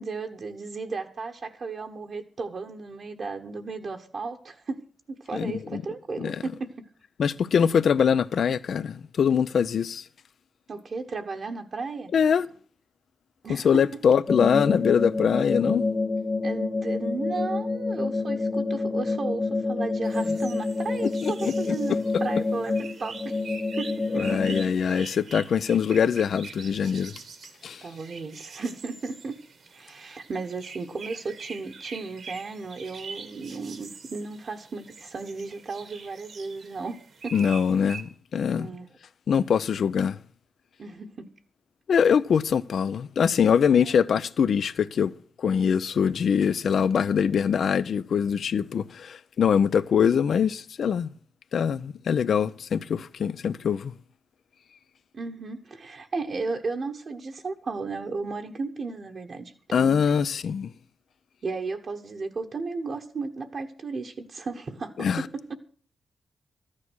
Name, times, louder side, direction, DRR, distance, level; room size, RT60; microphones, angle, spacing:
voice 1, 0.0-6.9 10.7-12.1 13.4-14.0 16.4-23.4 23.8-25.0 27.8-29.4 29.7-37.0 37.2-37.3 38.5-38.9 40.8-41.3 43.8-44.0 55.1-60.0 61.4-65.1 65.3-65.6, right 4 dB, 50° right, 1.2 m, -34 dB
voice 2, 5.3-5.8 6.2-6.4 7.2-10.0 12.1-12.5 13.5-15.8 21.0-21.7 24.1-27.1 27.6-27.8 37.3-38.7 39.3-40.2 41.9-45.1 45.4-51.1 51.5-53.9 59.7-60.7 65.0-65.3, left 7 dB, 70° left, 0.7 m, -23 dB
sound 1, 14.3-24.6, left 3 dB, 30° left, 1.5 m, -28 dB
sound 2, 20.0-38.0, right 5 dB, 65° right, 1.7 m, -44 dB
14.0 x 9.7 x 6.3 m
wide cardioid pair, 115°, 0 cm